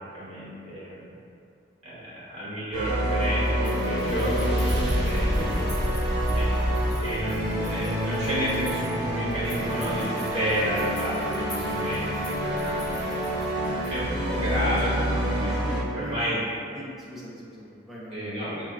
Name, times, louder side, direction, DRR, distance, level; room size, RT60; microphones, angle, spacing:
voice 1, 0.1-1.1 1.8-5.7 6.1-13.3 13.9-15.6 15.9-16.4 18.1-18.7, right 1 dB, 30° right, -10 dB, 0.8 m, -31 dB
sound 1, 2.7-15.8, equal, 70° right, 0.7 m, -27 dB
sound 2, 2.8-14.8, left 1 dB, 40° left, 1.1 m, -44 dB
voice 2, 4.7-5.9 13.6-16.3 16.7-18.2, equal, ahead, -7 dB, 0.3 m, -38 dB
3.4 x 2.2 x 2.2 m, 2.5 s
head